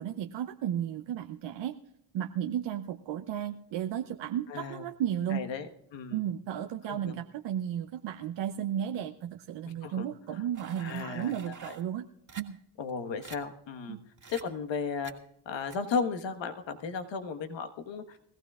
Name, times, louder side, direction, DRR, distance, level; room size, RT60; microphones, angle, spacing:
voice 1, 0.0-1.8 2.1-5.4 6.1-12.1 12.4-12.6 13.9-14.0, right 10 dB, 60° right, 7 dB, 0.8 m, -34 dB
voice 2, 4.5-4.8 5.3-6.2 6.9-7.2 9.8-10.4 10.8-11.5 12.8-14.0 14.3-15.1 15.4-18.2, left 5 dB, 60° left, 7 dB, 1.5 m, -35 dB
sound 1, 10.5-11.8 12.3-12.4 12.9-13.0 13.2-13.4 14.2-14.4 15.0-15.2 15.7-15.8, right 5 dB, 35° right, 2.0 m, -47 dB
21.0 x 15.0 x 2.4 m, 0.79 s
supercardioid pair, 55°, 50 cm